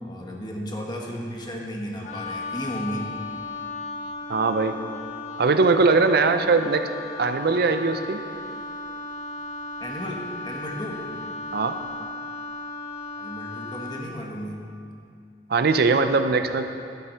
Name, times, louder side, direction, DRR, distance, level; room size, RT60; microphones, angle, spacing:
voice 1, 0.0-3.1 9.8-11.1 13.1-14.6, equal, 25° left, -1 dB, 1.4 m, -34 dB
Wind instrument woodwind instrument, 2.0-14.1, left 2 dB, 45° left, 0.7 m, -36 dB
voice 2, 4.3-4.8 5.4-6.9 7.2-8.2 11.5-11.8 15.5-16.6, right 4 dB, 60° right, 8 dB, 0.5 m, -20 dB
11.5 x 7.7 x 5.6 m, 2.4 s
head